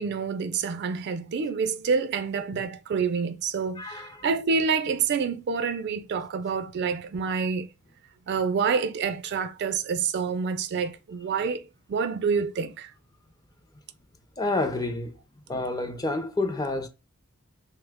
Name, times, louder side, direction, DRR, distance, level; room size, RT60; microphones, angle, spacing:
voice 1, 0.0-7.7 8.3-11.6 11.9-12.9, right 5 dB, 55° right, 0.3 m, -27 dB
voice 2, 3.8-4.1 14.4-15.1 15.5-16.9, left 2 dB, 20° left, 0.4 m, -29 dB
3.2 x 2.1 x 3.4 m
head